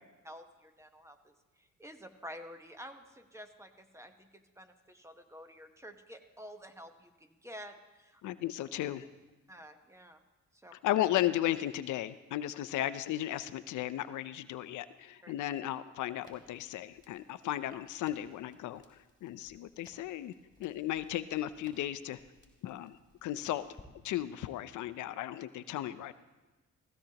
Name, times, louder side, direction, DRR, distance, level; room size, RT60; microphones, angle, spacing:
voice 1, 0.2-8.2 9.5-10.2 10.5-10.7 15.2-15.3, equal, 10° right, 7 dB, 1.0 m, -50 dB
voice 2, 8.2-9.1 10.8-20.3 20.6-22.2 22.6-23.7 24.0-26.1, left 13 dB, 75° left, 13 dB, 0.6 m, -35 dB
Crackle, 16.2-24.5, left 2 dB, 15° left, 2.9 m, -62 dB
16.0 x 15.5 x 2.9 m, 1.1 s
cardioid pair, 90°, 30 cm